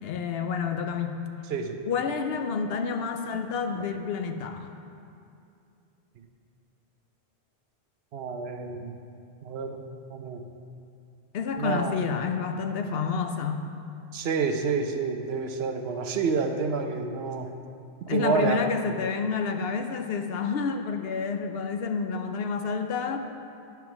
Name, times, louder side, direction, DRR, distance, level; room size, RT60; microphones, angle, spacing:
voice 1, 0.0-1.2 1.9-4.7 11.3-13.7 18.1-23.2, left 5 dB, 70° left, 6 dB, 0.8 m, -29 dB
voice 2, 8.1-9.0 9.4-9.8 10.1-10.4 11.6-12.0 14.1-17.5 18.1-18.6, right 5 dB, 75° right, 6 dB, 0.9 m, -28 dB
9.4 x 4.6 x 5.9 m, 2.5 s
omnidirectional pair, 1.1 m